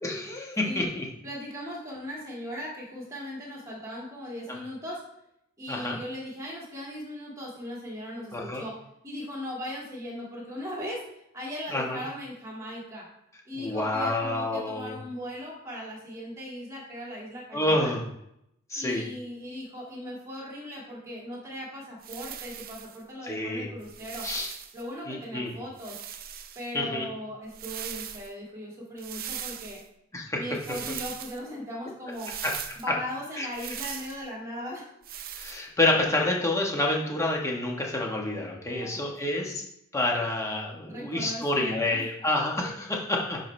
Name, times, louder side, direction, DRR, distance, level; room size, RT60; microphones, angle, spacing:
voice 1, 0.0-1.1 4.5-4.6 5.7-6.0 8.3-8.6 11.7-12.0 13.5-15.0 17.5-18.0 18.7-19.0 23.2-23.7 24.2-24.5 25.1-25.5 26.7-27.1 30.1-30.4 33.4-33.5 35.4-39.6 39.9-43.4, left 2 dB, 15° left, -1 dB, 1.2 m, -28 dB
voice 2, 1.2-5.0 5.6-11.0 11.3-13.1 13.5-18.0 18.7-24.3 24.7-26.0 26.6-29.8 30.4-32.4 32.8-34.9 38.6-39.4 40.9-42.1, equal, 15° right, -4 dB, 2.0 m, -38 dB
sound 1, 22.0-23.0 23.8-24.8 25.8-26.7 27.5-28.3 29.0-29.9 30.6-31.4 32.1-32.9 33.5-34.2 35.0-35.6, right 9 dB, 45° right, 0.5 m, -39 dB
10.5 x 4.5 x 3.2 m, 0.79 s
head